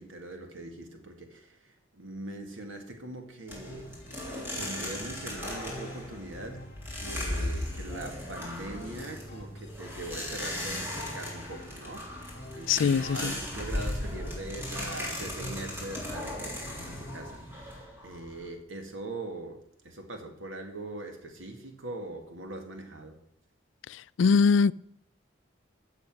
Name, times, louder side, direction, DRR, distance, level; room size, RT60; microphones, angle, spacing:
voice 1, 0.0-3.9 4.2-6.7 6.9-23.2, right 2 dB, 90° right, 2.0 m, -42 dB
sound 1, 3.5-18.5, left 1 dB, 10° right, 3.3 m, -37 dB
sound 2, 3.6-17.3, equal, 35° left, 2.5 m, -47 dB
voice 2, 12.7-13.3 23.9-24.7, left 5 dB, 75° left, 0.4 m, -23 dB
14.5 x 7.2 x 5.9 m
head